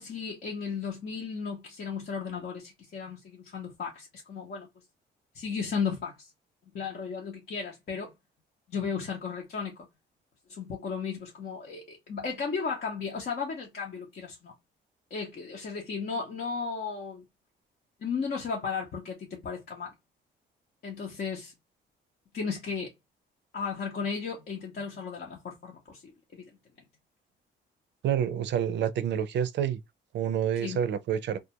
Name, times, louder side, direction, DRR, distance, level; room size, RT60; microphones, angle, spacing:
voice 1, 0.0-4.7 5.3-6.3 6.7-8.1 8.7-9.9 10.5-14.5 15.1-17.2 18.0-19.9 20.8-21.5 22.3-22.9 23.5-26.5 30.6-30.8, left 5 dB, 50° left, 0.8 m, -35 dB
voice 2, 28.0-29.8 30.1-31.4, right 9 dB, 65° right, 0.5 m, -28 dB
2.3 x 2.2 x 2.8 m
cardioid pair, 90°, 20 cm